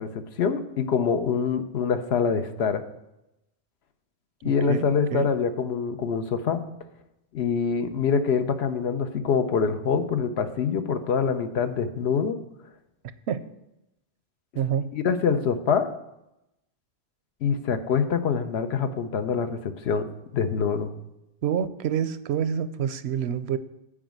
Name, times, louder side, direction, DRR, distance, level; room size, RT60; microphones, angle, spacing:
voice 1, 0.0-2.8 4.4-6.6 7.3-12.4 14.9-15.9 17.4-20.1 20.3-20.9, left 6 dB, 75° left, 9 dB, 1.0 m, -25 dB
voice 2, 4.4-5.3 13.3-13.4 14.5-14.9 21.4-23.6, right 8 dB, 80° right, 13 dB, 0.8 m, -27 dB
8.6 x 4.8 x 7.5 m, 0.89 s
omnidirectional pair, 1.1 m